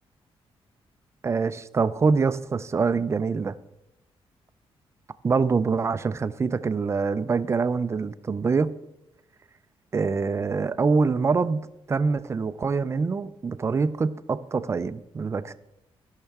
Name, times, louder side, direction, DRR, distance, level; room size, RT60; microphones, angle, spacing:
voice 1, 1.2-3.5 5.2-8.7 9.9-11.6 11.9-15.5, right 4 dB, 25° right, 14 dB, 0.4 m, -25 dB
15.5 x 5.6 x 3.5 m, 0.90 s
cardioid pair, 120°, 10 cm